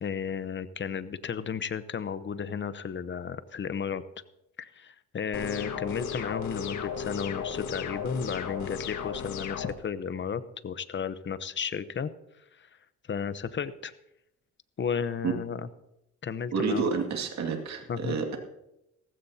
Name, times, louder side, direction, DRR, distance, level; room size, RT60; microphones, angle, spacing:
voice 1, 0.0-4.0 4.6-12.1 12.5-12.7 13.1-13.9 14.8-15.7 16.2-16.9 17.9-18.2, left 7 dB, 40° left, 14 dB, 0.9 m, -33 dB
sound 1, 5.3-9.7, left 7 dB, 70° left, 1.6 m, -35 dB
voice 2, 16.5-18.4, right 5 dB, 65° right, 3 dB, 2.2 m, -29 dB
17.0 x 15.0 x 2.8 m, 0.87 s
cardioid pair, 90°, 30 cm